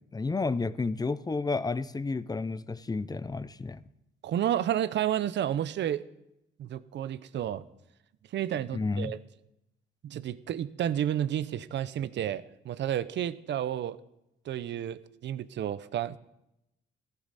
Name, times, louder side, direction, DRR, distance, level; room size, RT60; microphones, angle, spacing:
voice 1, 0.0-3.8 8.7-9.2, left 3 dB, 20° left, 16 dB, 0.6 m, -31 dB
voice 2, 4.2-6.0 6.6-7.6 8.3-9.2 10.0-14.0 14.4-16.2, right 10 dB, 65° right, 15 dB, 0.7 m, -31 dB
15.0 x 14.0 x 4.2 m, 0.84 s
cardioid pair, 90°, 20 cm